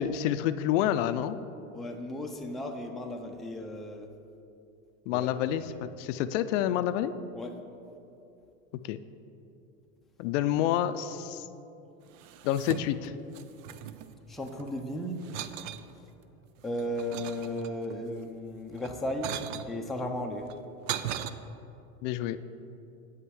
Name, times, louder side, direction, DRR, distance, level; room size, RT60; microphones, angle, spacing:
voice 1, 0.0-1.4 5.1-7.1 8.8-9.0 10.2-11.5 12.4-13.1 22.0-22.4, left 11 dB, 65° left, 12 dB, 0.5 m, -28 dB
voice 2, 1.7-4.1 5.1-5.8 7.3-7.6 14.3-15.2 16.6-19.3 19.7-20.5, left 1 dB, ahead, 1 dB, 0.4 m, -35 dB
sound 1, 12.1-13.1 13.3-14.7 15.2-15.9 16.4-18.0 18.7-19.7 20.4-21.3, right 11 dB, 75° right, 0.6 m, -38 dB
7.7 x 5.6 x 6.3 m, 2.8 s
supercardioid pair, 115°, 40 cm